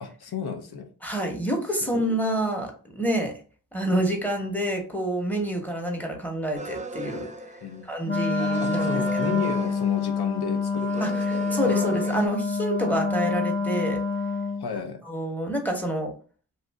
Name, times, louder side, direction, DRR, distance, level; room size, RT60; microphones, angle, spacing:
voice 1, 0.0-0.9 1.9-2.0 7.6-8.0 8.6-11.4 11.7-12.0 14.6-15.0, left 7 dB, 70° left, 6 dB, 0.7 m, -33 dB
voice 2, 1.0-3.3 3.7-7.3 7.8-9.4 11.0-14.0 15.0-16.1, right 1 dB, 5° left, 2 dB, 0.9 m, -28 dB
sound 1, 6.5-8.0 8.4-10.4 10.8-12.3, right 2 dB, 20° right, 0.3 m, -38 dB
Wind instrument woodwind instrument, 8.0-14.7, left 4 dB, 35° left, 0.6 m, -27 dB
2.8 x 2.4 x 3.3 m, 0.39 s
wide cardioid pair, 55°, 40 cm